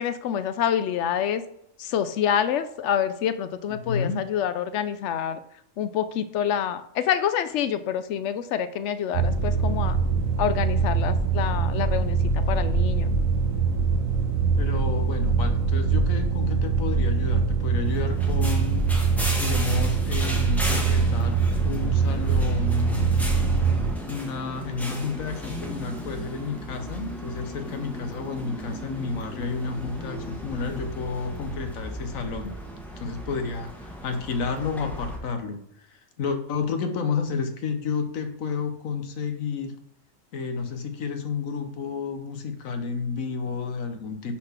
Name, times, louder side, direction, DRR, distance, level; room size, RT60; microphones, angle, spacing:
voice 1, 0.0-1.4 1.8-5.4 5.8-10.0 10.4-12.2 12.5-13.2, left 9 dB, 65° left, 12 dB, 0.9 m, -27 dB
voice 2, 3.7-4.3 14.6-18.9 19.4-23.1 24.1-32.5 33.0-39.7 40.3-44.4, left 5 dB, 90° left, 7 dB, 1.3 m, -31 dB
sound 1, 9.1-23.9, right 5 dB, 90° right, 1.3 m, -23 dB
sound 2, 17.8-35.2, equal, ahead, 1.0 m, -36 dB
6.3 x 4.0 x 5.7 m, 0.79 s
omnidirectional pair, 1.4 m